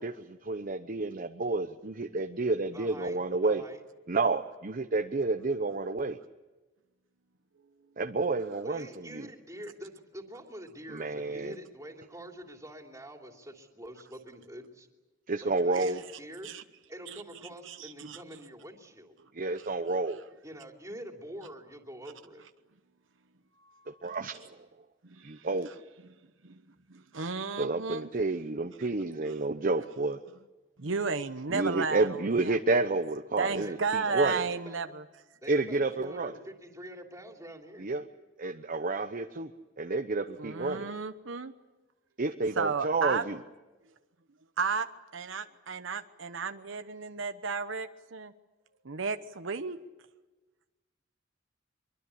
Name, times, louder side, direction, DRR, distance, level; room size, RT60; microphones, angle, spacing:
voice 1, 0.0-3.6 4.1-6.2 8.0-9.3 10.9-11.5 15.3-16.0 19.3-20.2 24.0-24.6 25.2-25.7 27.6-30.2 31.5-34.5 35.5-36.3 37.8-38.0 38.4-40.9 42.2-43.4, right 3 dB, 45° right, 6 dB, 0.8 m, -30 dB
voice 2, 2.7-3.8 8.6-14.9 15.4-16.5 16.9-19.2 20.4-22.4 33.6-33.8 34.1-34.9 35.4-37.9, equal, 15° right, 2 dB, 3.1 m, -46 dB
voice 3, 17.7-18.2 25.2-25.3 26.4-26.6 26.9-28.1 30.8-32.1 32.5-32.6 33.4-35.0 40.4-41.5 42.6-43.2 44.6-44.9 45.1-48.3 48.8-49.8, right 5 dB, 75° right, 9 dB, 1.0 m, -33 dB
24.0 x 23.0 x 8.5 m, 1.2 s
head